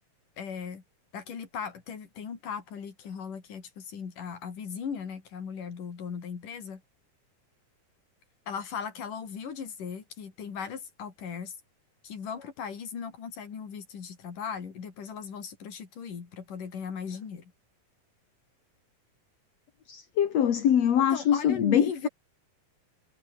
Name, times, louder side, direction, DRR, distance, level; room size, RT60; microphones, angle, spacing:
voice 1, 0.4-0.8 1.1-6.8 8.5-11.6 12.0-17.5 21.1-22.1, left 6 dB, 75° left, 5.1 m, -37 dB
voice 2, 19.9-22.1, left 9 dB, 55° left, 2.8 m, -24 dB
omnidirectional pair, 3.7 m